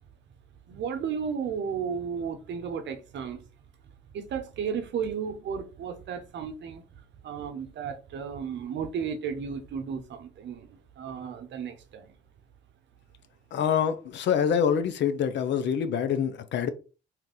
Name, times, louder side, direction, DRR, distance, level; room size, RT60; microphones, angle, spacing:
voice 1, 0.7-3.4 4.1-6.8 7.2-12.1, right 6 dB, 65° right, 0.7 m, -34 dB
voice 2, 13.5-16.7, left 8 dB, 65° left, 0.5 m, -26 dB
2.9 x 2.5 x 3.7 m
cardioid pair, 90°, 20 cm